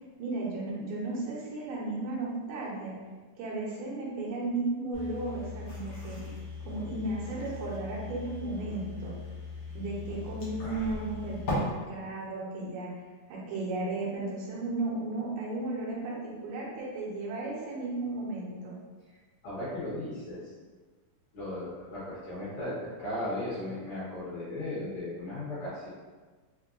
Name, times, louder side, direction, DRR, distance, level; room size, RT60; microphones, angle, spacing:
voice 1, 0.2-2.9 3.4-6.3 6.7-9.1 9.7-12.9 13.3-18.7, right 2 dB, 80° right, -5 dB, 2.3 m, -34 dB
sound 1, 4.9-11.5, left 4 dB, 80° left, 1.2 m, -40 dB
voice 2, 19.4-20.4 21.3-25.9, left 1 dB, 65° left, -10 dB, 2.1 m, -36 dB
5.9 x 2.2 x 2.5 m, 1.3 s
omnidirectional pair, 4.0 m